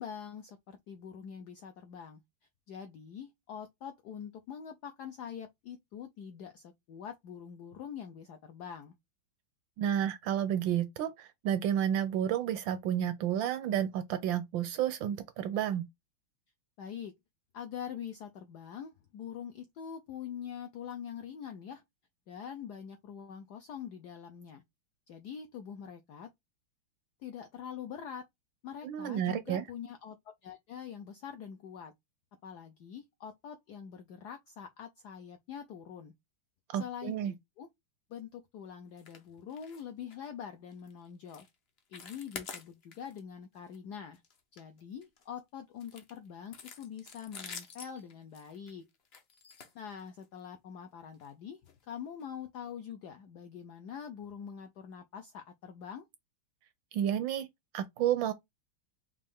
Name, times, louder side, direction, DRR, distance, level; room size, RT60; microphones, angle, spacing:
voice 1, 0.0-2.2 2.7-8.9 16.8-17.1 17.5-21.8 22.3-24.6 25.1-26.3 27.2-28.3 28.6-30.2 30.4-31.9 32.4-36.1 36.7-37.7 38.1-41.5 41.9-44.2 44.5-48.8 49.7-51.6 51.9-56.1, left 8 dB, 80° left, 0.9 m, -44 dB
voice 2, 9.8-15.9 28.8-29.6 36.7-37.3 56.9-57.5 57.7-58.3, right 10 dB, 75° right, 1.1 m, -31 dB
sound 1, 39.0-39.2 39.5-39.8 40.1-40.3 40.7-40.9 41.3-41.5 41.8-43.2 43.5-43.8 44.1-45.2 45.8-50.4 51.1-51.3 51.7-51.8 52.2-52.3, left 5 dB, 65° left, 0.6 m, -48 dB
5.4 x 2.5 x 3.4 m
omnidirectional pair, 2.4 m